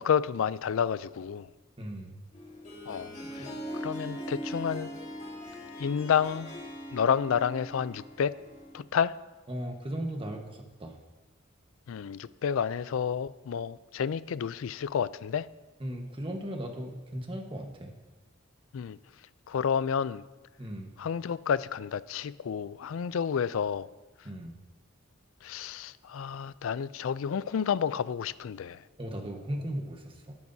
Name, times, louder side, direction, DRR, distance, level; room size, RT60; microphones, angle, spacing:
voice 1, 0.0-1.5 2.9-4.9 5.8-6.5 6.9-8.3 8.7-9.1 11.9-15.5 18.7-19.0 19.5-20.2 21.0-23.9 25.4-28.8, left 7 dB, 75° left, 17 dB, 0.4 m, -30 dB
voice 2, 1.8-2.2 3.4-3.5 9.5-11.0 15.8-17.9 20.6-20.9 24.2-24.6 29.0-30.3, equal, 25° right, 3 dB, 1.3 m, -37 dB
Harp, 2.3-8.8, equal, 40° left, 3.4 m, -41 dB
18.5 x 9.3 x 2.7 m, 1.2 s
head